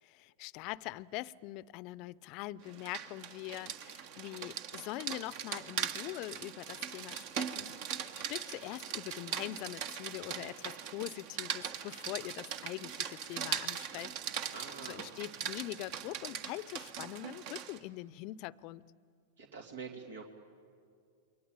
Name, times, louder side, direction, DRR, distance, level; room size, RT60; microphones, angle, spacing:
voice 1, 0.0-14.2 14.5-18.9, left 17 dB, 45° left, 19 dB, 0.6 m, -43 dB
Rain, 2.7-17.8, right 8 dB, 50° right, 1.6 m, -40 dB
voice 2, 14.5-15.1 19.4-20.2, right 5 dB, 75° right, 3 dB, 2.8 m, -46 dB
28.5 x 23.0 x 8.9 m, 2.2 s
hypercardioid pair, 115°, 0 cm